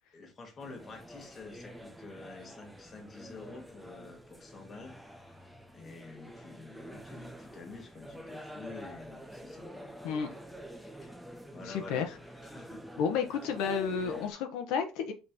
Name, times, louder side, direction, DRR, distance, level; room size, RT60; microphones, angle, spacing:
voice 1, 0.1-9.9 10.7-11.1 11.5-12.9, left 3 dB, 20° left, 1.4 m, -49 dB
sound 1, 0.6-14.3, equal, ahead, 0.7 m, -48 dB
voice 2, 11.7-12.1 13.0-15.1, left 6 dB, 65° left, 1.0 m, -31 dB
5.5 x 4.3 x 4.2 m
cardioid pair, 170°, 0 cm